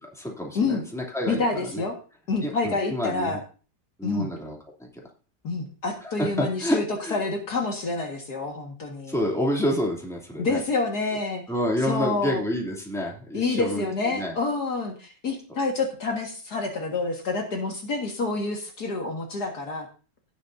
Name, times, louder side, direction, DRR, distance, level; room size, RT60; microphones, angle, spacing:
voice 1, 0.0-1.4 1.7-1.8 2.4-3.4 4.0-4.6 6.0-7.2 9.1-10.6 11.5-13.8 14.1-14.3, equal, ahead, -2 dB, 2.8 m, -28 dB
voice 2, 1.3-2.0 2.3-3.4 4.0-4.3 5.4-6.8 7.1-9.2 10.4-11.4 11.8-12.4 13.3-19.9, left 3 dB, 60° left, 2 dB, 2.3 m, -28 dB
17.5 x 7.9 x 2.7 m, 0.36 s
omnidirectional pair, 1.9 m